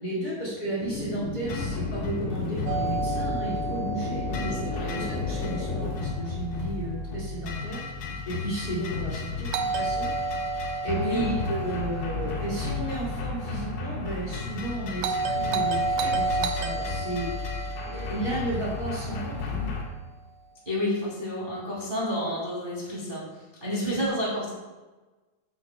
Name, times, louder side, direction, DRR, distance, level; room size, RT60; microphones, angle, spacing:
voice 1, 0.0-4.3 4.9-7.8 8.3-9.5 9.7-10.1 10.8-17.3 17.8-19.7 23.6-24.0, right 2 dB, 30° left, -6 dB, 2.3 m, -33 dB
sound 1, 0.8-5.9, left 3 dB, 65° left, 2.1 m, -35 dB
sound 2, 1.5-19.8, left 3 dB, 85° left, 3.3 m, -33 dB
Doorbell, 2.7-6.6 9.5-13.7 15.0-19.4, right 3 dB, 80° right, 2.0 m, -32 dB
voice 2, 4.3-4.9 10.9-11.3 20.7-24.5, left 1 dB, 15° right, -6 dB, 1.8 m, -30 dB
14.0 x 7.7 x 2.3 m, 1.2 s
omnidirectional pair, 4.4 m